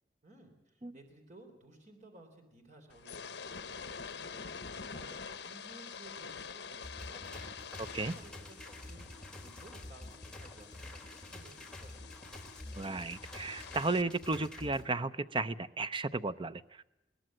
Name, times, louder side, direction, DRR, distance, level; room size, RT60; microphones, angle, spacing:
voice 1, 0.2-12.4, right 2 dB, 45° right, 4 dB, 3.7 m, -57 dB
sound 1, 2.9-14.0, left 6 dB, 70° left, 1.1 m, -47 dB
sound 2, 6.8-14.8, left 1 dB, 5° left, 3.2 m, -48 dB
voice 2, 7.8-8.1 12.8-16.8, right 3 dB, 30° right, 13 dB, 0.7 m, -34 dB
21.5 x 19.5 x 7.6 m, 0.92 s
head